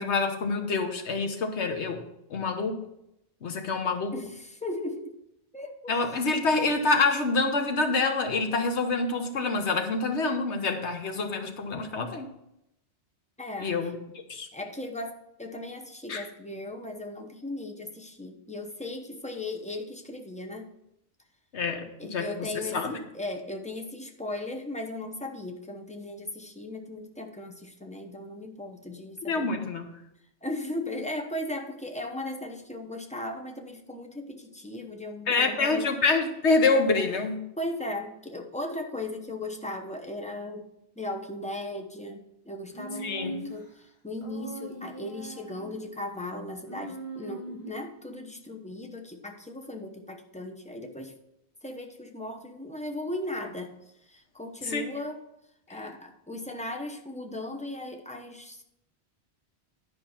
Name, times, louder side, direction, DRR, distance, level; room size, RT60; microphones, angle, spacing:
voice 1, 0.0-2.0 2.3-2.8 3.4-4.1 5.9-12.3 13.6-14.0 14.3-14.5 16.1-16.2 21.5-21.8 22.1-23.0 29.3-29.8 35.3-37.4 43.0-43.3 54.6-54.8, left 3 dB, 85° left, 5 dB, 1.4 m, -26 dB
voice 2, 4.1-5.2 5.5-6.0 13.4-13.7 14.5-20.7 22.0-29.6 30.4-35.9 37.6-40.6 41.0-51.2 51.6-53.8 54.1-55.2 55.7-58.7, left 1 dB, 5° left, 4 dB, 0.8 m, -37 dB
Human voice, 42.7-43.7 44.2-45.8 46.6-47.9, right 1 dB, 30° left, 1.6 m, -40 dB
10.5 x 5.1 x 5.8 m, 0.82 s
omnidirectional pair, 1.1 m